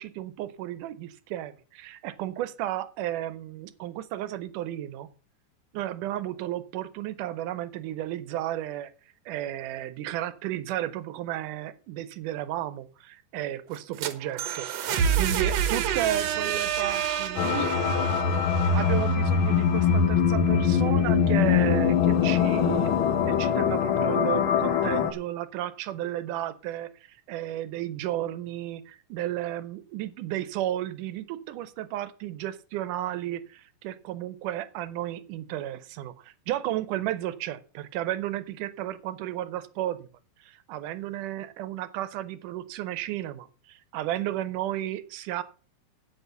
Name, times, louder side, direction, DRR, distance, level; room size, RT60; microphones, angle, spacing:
voice 1, 0.0-5.1 5.7-8.9 9.3-14.7 15.2-17.7 18.7-22.9 23.3-40.1 40.4-45.4, right 13 dB, 80° right, 15 dB, 2.3 m, -33 dB
sound 1, 13.7-19.6, right 8 dB, 65° right, 1.9 m, -29 dB
sound 2, 17.3-25.1, left 7 dB, 75° left, 1.1 m, -23 dB
8.4 x 8.3 x 6.9 m, 0.37 s
omnidirectional pair, 3.7 m